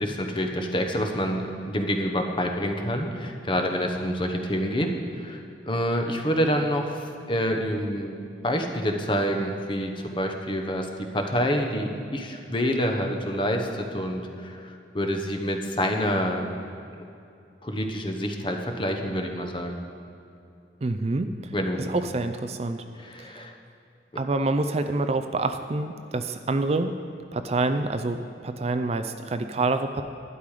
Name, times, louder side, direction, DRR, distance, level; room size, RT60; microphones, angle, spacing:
voice 1, 0.0-8.2 8.4-16.5 17.6-19.8 21.5-21.9 23.0-23.5, equal, 30° left, 4 dB, 1.0 m, -27 dB
voice 2, 20.8-22.9 23.2-23.4 24.2-27.0 27.3-30.0, right 2 dB, 35° right, 8 dB, 0.4 m, -27 dB
12.0 x 10.0 x 4.9 m, 2.6 s
head